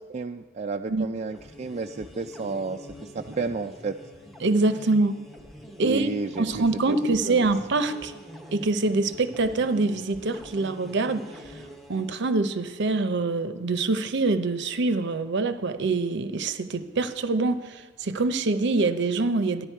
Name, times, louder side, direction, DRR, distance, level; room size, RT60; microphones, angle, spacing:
voice 1, 0.1-4.0 5.8-6.7 7.1-7.5, right 4 dB, 35° right, 4 dB, 0.3 m, -32 dB
sound 1, 1.2-12.2, equal, ahead, 0.8 m, -45 dB
voice 2, 4.4-5.2 5.8-6.1 6.4-8.1 8.5-11.3 11.9-19.7, right 3 dB, 60° right, 11 dB, 0.7 m, -25 dB
13.5 x 10.5 x 4.6 m, 1.3 s
head